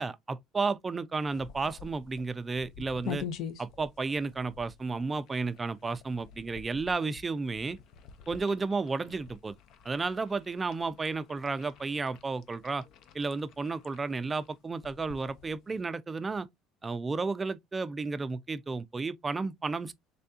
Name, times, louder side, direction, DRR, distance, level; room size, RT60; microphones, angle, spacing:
voice 1, 0.0-3.2 3.6-7.8 8.3-9.5 9.8-12.8 13.1-16.5 16.8-19.9, right 4 dB, 20° right, 0.4 m, -32 dB
sound 1, 1.3-15.8, left 7 dB, 55° left, 0.5 m, -46 dB
3.4 x 3.4 x 2.7 m
cardioid pair, 135°, 0 cm